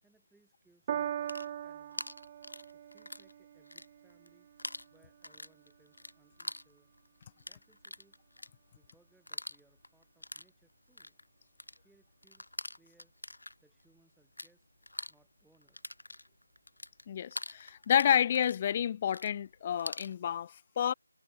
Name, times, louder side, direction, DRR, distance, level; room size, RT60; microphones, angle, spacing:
voice 1, 0.0-2.1 2.7-4.5 4.9-6.9 7.4-8.2 8.7-11.2 11.8-13.1 13.6-14.7 15.1-15.9, right 3 dB, ahead, 6.6 m, -69 dB
Piano, 0.9-7.5 8.3-8.4, right 10 dB, 25° right, 1.6 m, -43 dB
sound 1, 1.0-3.3 3.6-4.3 4.6-14.5 14.8-20.1, left 1 dB, 80° left, 1.1 m, -45 dB
voice 2, 17.1-20.9, left 9 dB, 30° left, 0.7 m, -29 dB
figure-of-eight pair, 155°, 0 cm